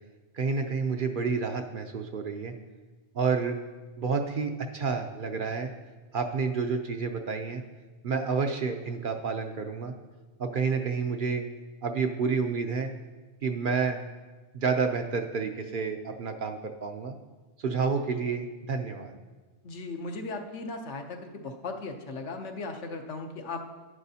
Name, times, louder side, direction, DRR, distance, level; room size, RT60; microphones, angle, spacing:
voice 1, 0.3-2.5 3.1-3.6 4.0-5.7 6.1-7.6 8.0-9.9 10.4-11.5 11.8-12.9 13.4-14.0 14.5-17.1 17.6-19.1, right 5 dB, 55° right, 5 dB, 0.7 m, -29 dB
voice 2, 19.6-23.6, left 3 dB, 75° left, 4 dB, 1.1 m, -37 dB
11.0 x 9.7 x 2.8 m, 1.3 s
omnidirectional pair, 1.2 m